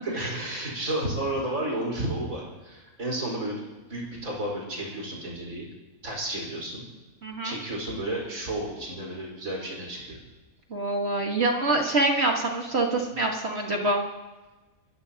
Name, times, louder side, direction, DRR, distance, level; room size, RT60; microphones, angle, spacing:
voice 1, 0.0-5.7 6.0-6.8 7.4-10.2, right 1 dB, 65° right, -2 dB, 5.2 m, -32 dB
voice 2, 7.2-7.6 10.7-14.0, right 2 dB, 45° right, 1 dB, 1.8 m, -25 dB
29.5 x 15.0 x 2.9 m, 1.2 s
omnidirectional pair, 1.5 m